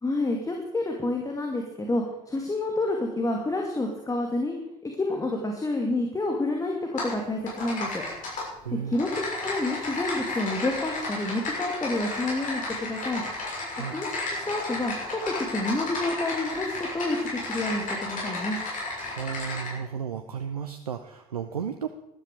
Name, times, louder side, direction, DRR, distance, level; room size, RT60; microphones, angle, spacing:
voice 1, 0.0-4.6 4.8-8.0 8.9-13.2 13.9-17.2 17.5-18.6, left 2 dB, 15° left, 1 dB, 2.4 m, -29 dB
Typing, 7.0-7.1 7.5-8.4 8.9-19.7, left 2 dB, 45° left, 6.4 m, -33 dB
voice 2, 8.6-9.0 13.7-13.9 19.1-21.9, right 7 dB, 80° right, 8 dB, 0.6 m, -33 dB
13.0 x 12.5 x 4.9 m, 0.88 s
figure-of-eight pair, 55°, 19 cm